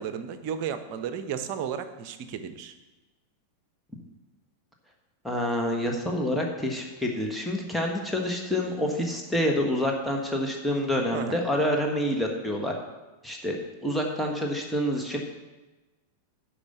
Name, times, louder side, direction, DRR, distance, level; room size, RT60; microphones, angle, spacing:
voice 1, 0.0-2.7 11.1-11.4, right 8 dB, 45° right, 10 dB, 0.8 m, -33 dB
voice 2, 5.2-12.7 13.2-13.6 13.8-15.2, equal, ahead, -1 dB, 1.5 m, -27 dB
12.0 x 5.0 x 6.8 m, 1.1 s
figure-of-eight pair, 90°, 0 cm